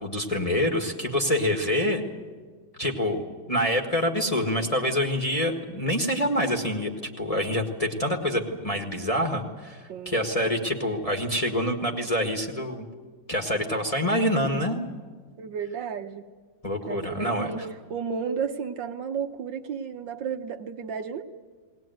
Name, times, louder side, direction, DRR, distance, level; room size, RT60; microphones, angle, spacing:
voice 1, 0.0-2.0 2.8-6.9 7.2-12.8 13.3-14.8 16.6-17.7, equal, 20° left, 1 dB, 1.5 m, -26 dB
voice 2, 9.9-10.2 15.4-16.3 16.9-17.6 17.9-21.2, right 6 dB, 65° right, 6 dB, 1.5 m, -32 dB
19.5 x 19.0 x 9.2 m, 1.5 s
omnidirectional pair, 2.2 m